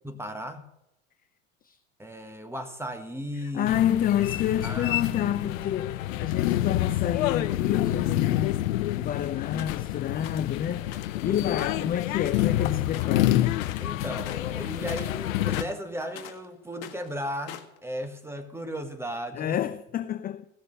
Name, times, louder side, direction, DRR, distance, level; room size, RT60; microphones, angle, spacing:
voice 1, 0.0-0.7 2.0-3.9 4.6-5.1 11.3-11.4 13.8-19.6, equal, 5° right, 1.5 m, -36 dB
voice 2, 3.5-8.6 9.0-13.6 19.3-20.5, left 10 dB, 25° left, 0.4 m, -28 dB
sound 1, 3.7-15.6, left 14 dB, 75° left, 0.7 m, -28 dB
sound 2, 9.6-9.9 10.2-10.5 10.9-11.2 11.5-12.6 12.9-13.2 13.5-13.9 14.2-16.4 16.7-17.8, left 11 dB, 55° left, 1.5 m, -42 dB
16.5 x 6.7 x 6.7 m
hypercardioid pair, 80°, 40 cm